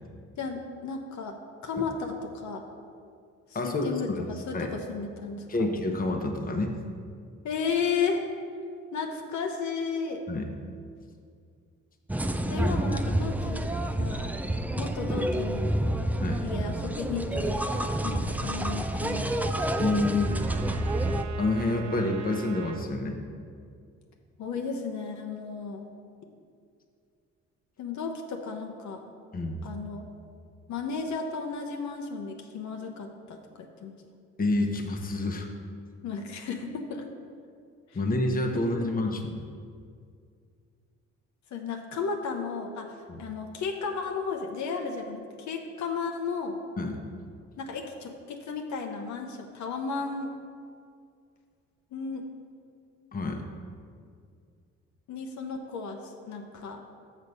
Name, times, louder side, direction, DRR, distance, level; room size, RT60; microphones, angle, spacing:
voice 1, 0.4-2.6 3.5-5.7 7.4-8.2 8.9-10.2 12.5-13.7 14.0-14.3 14.8-15.8 16.4-19.3 24.4-25.9 27.8-29.0 29.6-30.1 30.7-33.9 36.0-37.1 37.9-38.0 38.5-38.7 41.5-46.6 47.6-50.3 51.9-52.3 55.1-56.8, left 5 dB, 70° left, 3 dB, 0.8 m, -34 dB
voice 2, 3.5-4.3 4.5-4.7 5.5-6.7 10.3-10.5 16.2-16.4 18.4-18.5 19.8-20.3 21.4-23.2 29.3-29.6 34.4-35.5 37.9-39.4 43.1-43.2 46.8-47.0 53.1-53.4, left 2 dB, 30° left, 3 dB, 0.9 m, -28 dB
sound 1, 12.1-21.2, right 1 dB, 5° right, 0.4 m, -29 dB
Trumpet, 18.5-22.9, right 9 dB, 70° right, 0.6 m, -46 dB
6.4 x 6.4 x 5.4 m, 2.2 s
cardioid pair, 90°, 30 cm